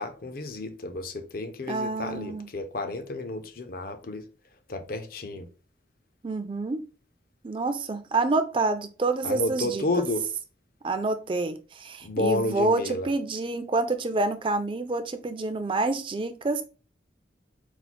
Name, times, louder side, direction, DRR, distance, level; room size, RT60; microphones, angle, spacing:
voice 1, 0.0-4.2 4.7-5.5 9.2-10.3 12.0-13.1, left 2 dB, 50° left, 0.5 m, -31 dB
voice 2, 1.7-2.5 6.2-6.8 7.4-9.8 10.8-16.6, right 3 dB, 25° right, 0.4 m, -27 dB
4.3 x 2.1 x 4.2 m
head